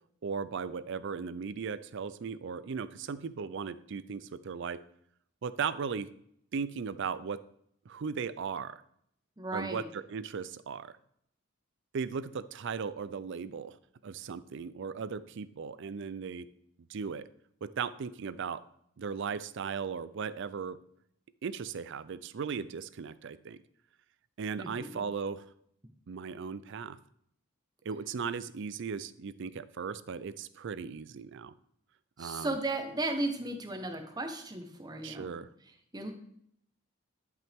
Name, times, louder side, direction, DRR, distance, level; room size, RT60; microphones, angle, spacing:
voice 1, 0.2-4.8 5.4-6.1 6.5-7.4 7.9-8.8 9.5-11.0 11.9-13.8 14.0-16.5 16.9-17.3 17.6-18.6 19.0-20.8 21.4-23.6 24.4-25.5 26.1-27.0 27.8-31.5 32.2-32.6 35.0-35.5, right 6 dB, 65° right, 16 dB, 0.4 m, -37 dB
voice 2, 9.4-9.8 24.6-25.0 32.2-35.3 35.9-36.1, right 2 dB, 20° right, 4 dB, 1.1 m, -35 dB
10.5 x 5.8 x 3.6 m, 0.70 s
head